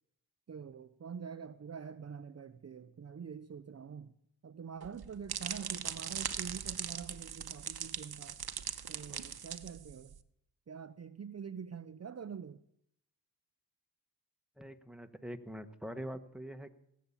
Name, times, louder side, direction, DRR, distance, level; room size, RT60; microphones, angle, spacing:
voice 1, 0.5-4.2 4.4-8.4 8.9-10.2 10.7-12.6, right 6 dB, 35° right, 0.6 m, -45 dB
sound 1, 4.8-10.2, right 8 dB, 55° right, 1.0 m, -40 dB
voice 2, 14.6-16.7, equal, ahead, 1.2 m, -44 dB
18.0 x 8.5 x 7.3 m
cardioid pair, 65°, 44 cm